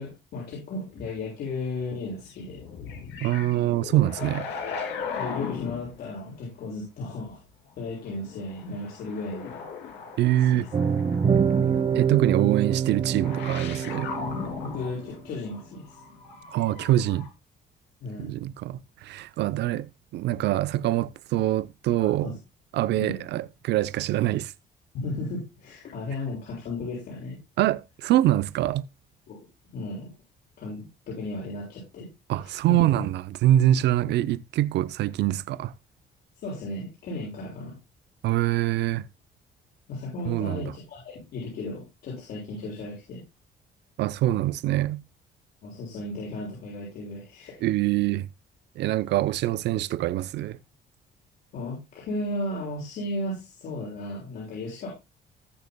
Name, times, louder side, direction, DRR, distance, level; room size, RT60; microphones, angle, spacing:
voice 1, 0.0-2.6 4.6-4.7 5.2-7.4 7.8-9.6 10.5-10.7 14.6-16.0 18.0-18.3 22.0-22.4 22.9-23.2 24.9-27.4 29.3-29.5 29.7-30.1 30.6-32.1 32.4-32.5 36.4-37.8 39.9-43.2 45.6-47.6 51.5-54.9, left 2 dB, 65° left, 6.5 m, -35 dB
sound 1, 2.2-6.1 8.2-17.3, left 6 dB, 90° left, 2.9 m, -38 dB
voice 2, 3.2-4.5 10.2-10.7 11.9-14.1 16.5-17.3 18.2-22.3 22.7-24.5 27.6-28.8 32.3-35.7 38.2-39.1 40.3-40.7 44.0-45.0 47.6-48.3 48.8-50.6, right 14 dB, 75° right, 0.6 m, -24 dB
sound 2, 10.7-14.9, right 7 dB, 30° right, 1.0 m, -25 dB
19.5 x 6.8 x 2.2 m
cardioid pair, 160°, 18 cm